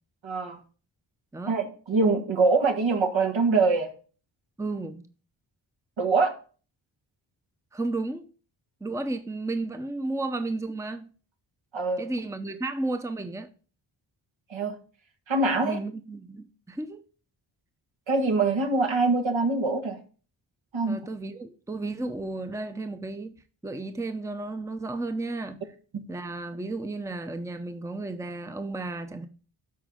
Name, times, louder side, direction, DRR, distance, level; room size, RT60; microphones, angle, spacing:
voice 1, 0.2-0.6 1.5-3.9 6.0-6.3 11.7-12.1 14.5-14.7 15.3-15.8 18.1-20.0 20.7-21.0 25.9-26.0, right 3 dB, 70° right, 1.6 m, -24 dB
voice 2, 4.6-5.1 7.7-8.3 8.8-11.1 12.0-13.5 15.5-17.0 20.9-23.4 23.6-25.6 26.1-29.3, right 2 dB, 5° right, 0.7 m, -33 dB
12.0 x 4.1 x 3.7 m
cardioid pair, 45°, 48 cm